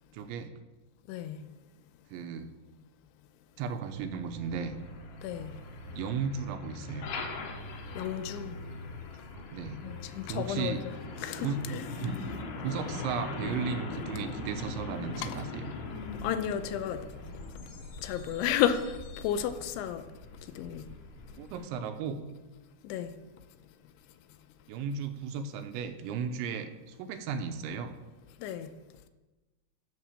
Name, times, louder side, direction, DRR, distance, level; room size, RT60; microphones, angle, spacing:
voice 1, 0.1-0.5 2.1-2.5 3.6-4.7 6.0-7.1 9.5-9.8 10.2-10.8 11.4-11.6 12.0-12.2 12.6-15.7 21.4-22.2 24.7-27.9, right 6 dB, 85° right, 3.1 m, -35 dB
voice 2, 1.1-1.4 5.2-5.5 7.9-8.6 9.8-10.8 11.2-11.8 15.2-15.3 16.1-17.1 18.0-20.0 20.6-20.9 22.8-23.2 28.4-28.7, left 10 dB, 80° left, 3.1 m, -32 dB
sound 1, 3.8-11.7, left 1 dB, 50° right, 1.9 m, -47 dB
Truck, 4.2-21.9, left 3 dB, 65° left, 2.9 m, -41 dB
12.5 x 6.8 x 7.3 m
omnidirectional pair, 5.4 m